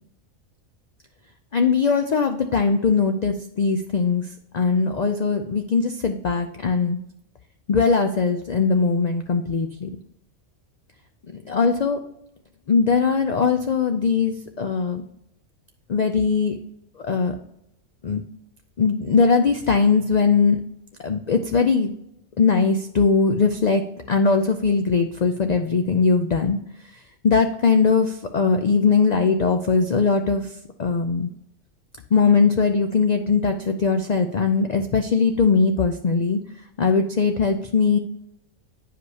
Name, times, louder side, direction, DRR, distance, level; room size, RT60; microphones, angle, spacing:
voice 1, 1.5-4.3 4.5-7.0 7.7-9.9 11.5-12.0 12.7-15.0 15.9-16.6 17.0-17.3 18.0-18.2 18.8-20.6 21.0-21.9 22.4-23.8 24.1-26.6 27.2-30.5 30.8-31.3 32.1-36.4 36.8-38.0, left 5 dB, 80° left, 6 dB, 0.3 m, -20 dB
9.5 x 5.1 x 2.7 m, 0.78 s
omnidirectional pair, 1.4 m